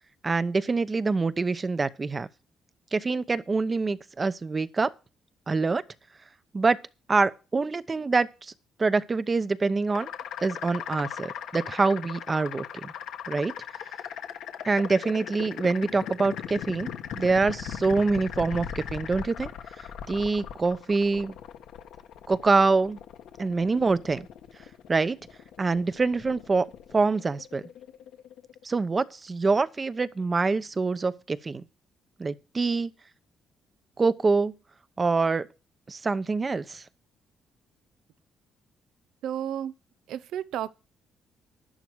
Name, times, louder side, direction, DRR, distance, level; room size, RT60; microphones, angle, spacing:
voice 1, 0.2-2.3 2.9-4.9 5.5-5.8 6.5-6.8 7.1-8.3 8.8-10.1 10.4-12.6 13.3-13.5 14.6-16.9 17.1-19.5 19.8-21.3 22.3-23.0 23.4-24.3 24.9-25.2 25.6-26.7 26.9-27.6 28.6-31.6 32.2-32.9 34.0-34.5 35.0-35.5 35.9-36.8, right 4 dB, 30° right, 0.8 m, -25 dB
sound 1, 9.9-28.6, left 8 dB, 80° left, 1.5 m, -39 dB
voice 2, 39.2-39.7 40.1-40.7, right 10 dB, 80° right, 0.6 m, -32 dB
11.5 x 11.0 x 4.7 m
cardioid pair, 90°, 0 cm